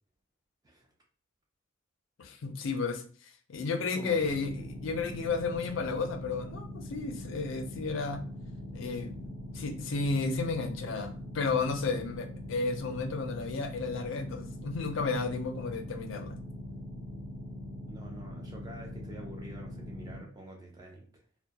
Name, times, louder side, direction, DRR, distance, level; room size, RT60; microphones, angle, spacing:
voice 1, 2.2-8.2 8.7-16.4, left 4 dB, 70° left, 5 dB, 0.4 m, -33 dB
voice 2, 3.8-4.3 4.6-4.7 17.8-21.2, right 1 dB, 20° right, 1 dB, 0.3 m, -47 dB
sound 1, 4.2-20.2, left 1 dB, 45° right, 0.8 m, -42 dB
2.2 x 2.0 x 2.7 m, 0.42 s
head